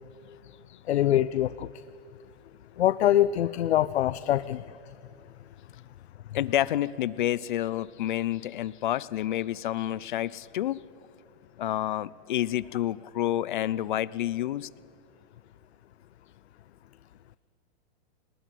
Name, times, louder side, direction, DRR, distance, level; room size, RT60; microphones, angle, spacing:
voice 1, 0.9-1.7 2.8-4.6, left 12 dB, 85° left, 15 dB, 0.7 m, -24 dB
voice 2, 6.3-10.8 11.6-14.7, left 13 dB, 50° left, 20 dB, 0.6 m, -29 dB
28.5 x 20.0 x 9.2 m, 2.5 s
supercardioid pair, 175°, 31 cm